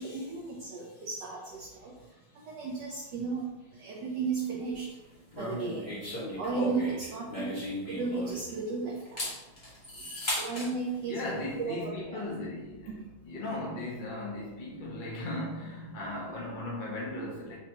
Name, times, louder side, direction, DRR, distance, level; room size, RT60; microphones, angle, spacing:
voice 1, 0.0-1.9 2.5-3.5 3.8-4.9 5.4-6.0 6.4-9.3 10.3-11.2 11.6-12.3, right 4 dB, 65° right, 1.2 m, -35 dB
sound 1, 5.3-8.6 9.0-10.7, equal, 25° left, 1.4 m, -36 dB
voice 2, 11.1-12.9 13.2-17.6, left 1 dB, 55° left, 0.5 m, -37 dB
6.7 x 2.8 x 2.8 m
omnidirectional pair, 2.3 m